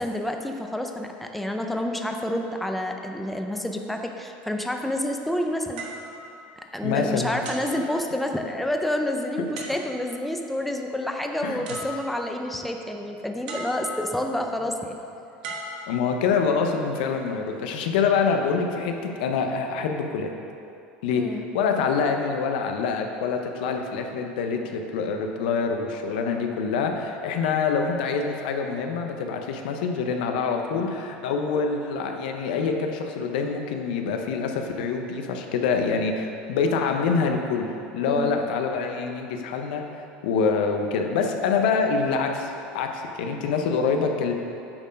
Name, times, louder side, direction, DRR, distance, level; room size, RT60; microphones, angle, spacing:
voice 1, 0.0-5.8 6.7-15.0 21.2-21.5 30.8-30.9 38.1-38.4, left 1 dB, 5° left, 3 dB, 0.5 m, -29 dB
sound 1, 5.8-7.0 7.4-8.6 9.6-10.3 11.3-11.4 11.7-12.5 13.5-14.3 15.4-16.5 17.3-17.5, right 1 dB, 85° right, 1.2 m, -38 dB
voice 2, 6.8-7.4 11.4-11.6 15.9-20.3 21.0-21.2 21.5-37.7 37.9-39.8 40.2-44.3, left 5 dB, 85° left, 4 dB, 0.7 m, -25 dB
8.7 x 4.5 x 5.1 m, 2.7 s
supercardioid pair, 125°, 5 cm